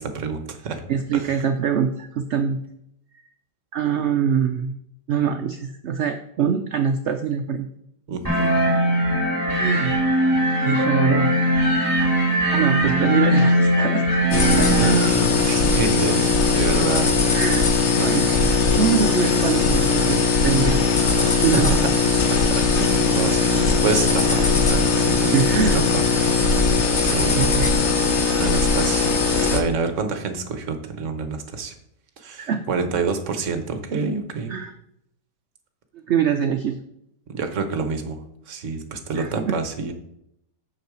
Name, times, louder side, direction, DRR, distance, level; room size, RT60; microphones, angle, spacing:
voice 1, 0.0-0.8 1.1-1.2 8.1-8.6 14.8-17.1 21.5-21.9 22.3-26.0 26.3-26.8 27.1-27.7 28.4-29.1 29.5-31.7 32.2-34.5 37.3-38.2 38.5-39.9, right 4 dB, 50° right, 7 dB, 1.2 m, -28 dB
voice 2, 0.9-2.6 3.7-4.8 5.1-7.7 9.5-10.0 10.5-11.3 12.5-14.8 17.3-17.7 18.0-18.5 18.8-20.9 21.4-21.8 25.3-25.8 27.3-27.9 32.4-32.6 34.5-34.7 36.1-36.8 39.2-39.6, right 7 dB, 85° right, 7 dB, 0.6 m, -24 dB
sound 1, 8.2-14.9, right 1 dB, 10° right, 1.9 m, -20 dB
sound 2, 14.3-29.6, left 4 dB, 45° left, 1.2 m, -19 dB
6.7 x 6.5 x 4.8 m, 0.77 s
omnidirectional pair, 1.8 m